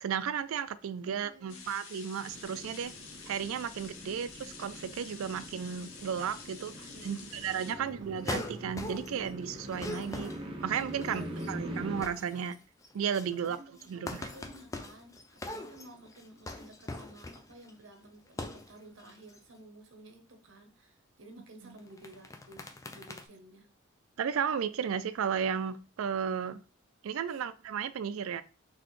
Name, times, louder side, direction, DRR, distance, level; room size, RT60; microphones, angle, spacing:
voice 1, 0.0-2.9 3.3-6.7 7.0-10.3 10.6-12.6 12.9-13.6 13.9-14.3 21.6-21.7 24.2-26.6 27.0-28.4, right 7 dB, 80° right, 0.4 m, -34 dB
voice 2, 1.0-1.7 6.7-7.3 7.7-8.4 11.1-11.5 13.4-23.7 27.3-27.4, right 1 dB, 60° right, 0.9 m, -54 dB
sound 1, 1.5-7.7, left 5 dB, 75° left, 0.9 m, -49 dB
sound 2, 2.3-12.0, equal, 25° right, 0.8 m, -43 dB
sound 3, 8.2-9.3 9.6-11.5 11.8-12.5 12.8-17.7 18.3-18.7 19.0-19.4 21.8-23.2, left 2 dB, 15° left, 0.4 m, -41 dB
4.0 x 3.3 x 3.2 m
head